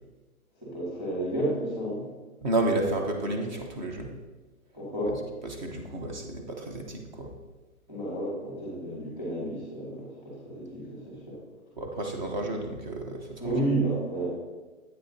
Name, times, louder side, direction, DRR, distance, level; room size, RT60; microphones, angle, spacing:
voice 1, 0.6-2.0 4.7-5.2 7.9-11.4 13.4-14.3, right 1 dB, 10° right, -7 dB, 2.4 m, -31 dB
voice 2, 2.4-4.1 5.4-7.3 11.8-13.4, right 2 dB, 30° right, 3 dB, 0.9 m, -31 dB
8.8 x 6.4 x 2.8 m, 1.2 s
hypercardioid pair, 165°, 44 cm